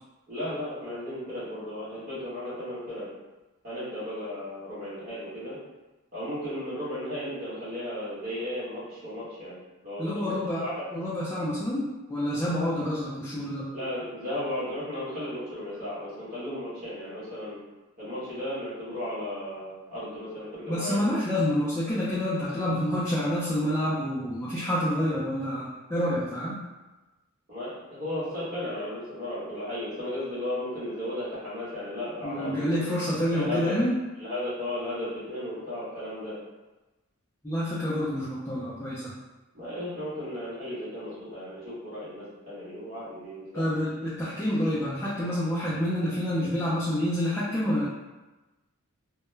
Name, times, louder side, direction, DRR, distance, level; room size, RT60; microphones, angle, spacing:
voice 1, 0.3-3.1 3.6-5.6 6.1-9.6 9.8-10.9 13.7-17.6 18.0-21.0 27.5-32.8 33.3-33.8 34.2-36.4 39.5-43.6, left 1 dB, 40° right, -11 dB, 1.0 m, -35 dB
voice 2, 10.0-13.7 20.7-26.6 32.2-33.9 37.4-39.1 43.5-47.9, equal, 10° left, -10 dB, 0.3 m, -28 dB
2.2 x 2.1 x 3.1 m, 1.1 s
head